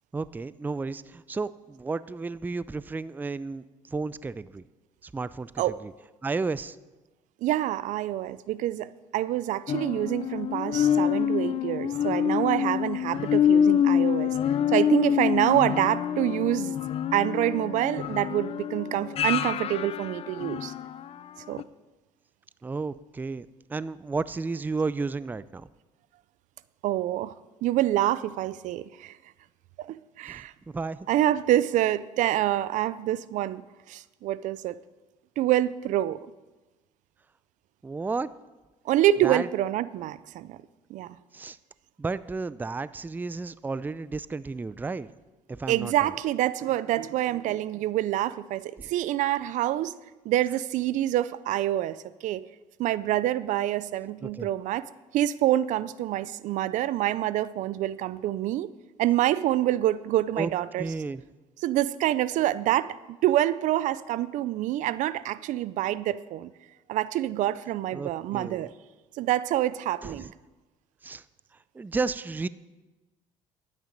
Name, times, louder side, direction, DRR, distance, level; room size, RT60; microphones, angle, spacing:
voice 1, 0.1-4.6 5.0-5.9 6.2-6.8 22.6-25.7 30.3-30.4 30.7-31.1 37.8-38.3 39.2-39.5 41.3-41.6 42.0-45.1 45.5-46.1 48.8-48.9 54.2-54.5 60.4-60.5 60.8-61.2 67.9-68.7 70.0-70.3 71.0-71.2 71.7-72.5, right 4 dB, 15° right, 17 dB, 0.4 m, -32 dB
voice 2, 7.4-14.3 14.7-16.8 17.1-20.7 21.5-21.6 26.8-27.3 27.6-29.2 29.8-30.5 31.1-33.6 33.9-34.8 35.4-36.3 38.9-40.6 40.9-41.2 45.7-50.0 50.2-52.5 52.8-54.9 55.1-58.7 59.0-60.9 61.6-66.5 66.9-68.7 69.2-70.3, right 13 dB, 70° right, 17 dB, 0.5 m, -26 dB
sound 1, 9.7-21.1 21.6-21.7, left 9 dB, 50° left, 0.5 m, -26 dB
11.5 x 9.4 x 5.2 m, 1.1 s
supercardioid pair, 85°, 13 cm